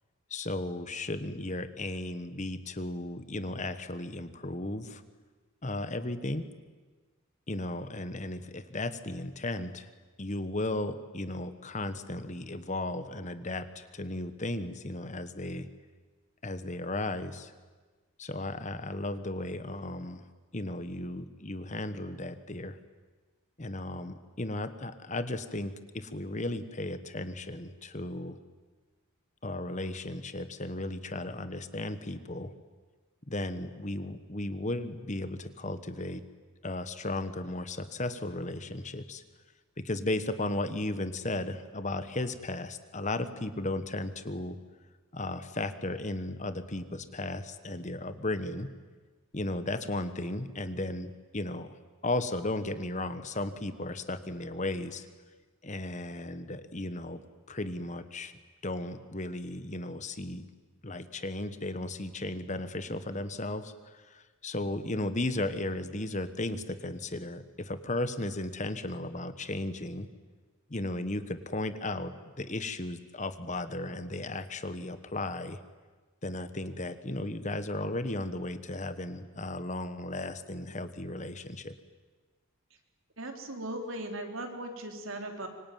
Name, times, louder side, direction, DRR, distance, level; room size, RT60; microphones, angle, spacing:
voice 1, 0.3-5.0 5.6-6.4 7.5-9.9 10.2-15.7 16.4-17.5 18.2-20.2 20.5-22.8 23.6-28.4 29.4-32.5 33.3-36.3 36.6-39.2 39.8-44.6 45.1-48.7 49.3-51.8 52.0-55.1 55.6-57.2 57.5-58.3 58.6-60.4 60.8-70.1 70.7-75.6 76.2-81.7, left 2 dB, 35° left, 11 dB, 1.3 m, -35 dB
voice 2, 83.2-85.5, right 1 dB, 65° right, 4 dB, 3.7 m, -38 dB
26.0 x 24.0 x 9.4 m, 1.3 s
head